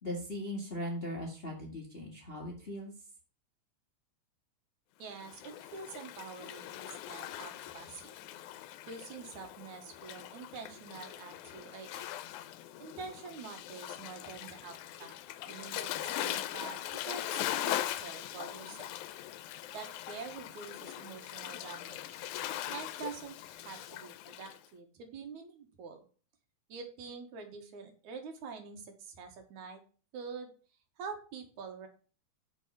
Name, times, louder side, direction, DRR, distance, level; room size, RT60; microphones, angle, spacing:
voice 1, 0.0-2.9, left 1 dB, 30° left, -1 dB, 1.2 m, -39 dB
voice 2, 5.0-8.1 8.9-12.1 12.8-15.2 15.5-18.9 19.7-22.2 22.7-26.0 26.7-29.8 30.1-30.5 31.0-31.9, right 5 dB, 80° right, 5 dB, 2.8 m, -46 dB
Waves surf, 5.1-24.6, left 13 dB, 85° left, 2.0 m, -41 dB
6.4 x 5.2 x 6.1 m, 0.38 s
omnidirectional pair, 3.4 m